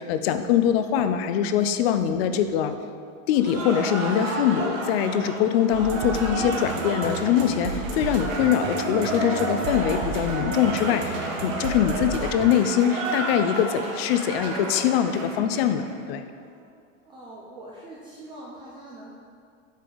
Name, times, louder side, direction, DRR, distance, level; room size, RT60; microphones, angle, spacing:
voice 1, 0.0-2.7 3.3-11.2 11.4-16.2, left 9 dB, 50° left, 9 dB, 0.5 m, -23 dB
Cheering / Applause, 3.3-15.9, right 2 dB, 80° right, 1.8 m, -32 dB
sound 1, 5.7-12.5, right 4 dB, 65° right, 1.1 m, -33 dB
voice 2, 17.0-19.1, right 1 dB, 15° right, -5 dB, 0.5 m, -43 dB
8.2 x 4.9 x 3.9 m, 2.2 s
supercardioid pair, 145°, 39 cm